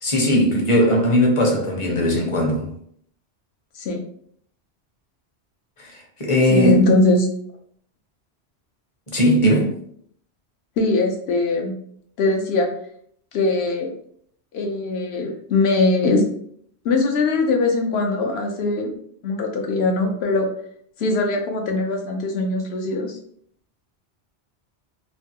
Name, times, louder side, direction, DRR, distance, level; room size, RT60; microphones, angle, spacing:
voice 1, 0.0-2.7 5.8-6.8 9.1-9.8, equal, 35° left, 0 dB, 0.7 m, -19 dB
voice 2, 6.5-7.3 10.8-11.7 12.2-12.7 13.3-13.9 14.5-16.2 16.8-18.9 19.2-20.5 21.0-23.2, left 2 dB, 70° left, 3 dB, 0.9 m, -21 dB
3.2 x 2.2 x 2.8 m, 0.64 s
omnidirectional pair, 1.1 m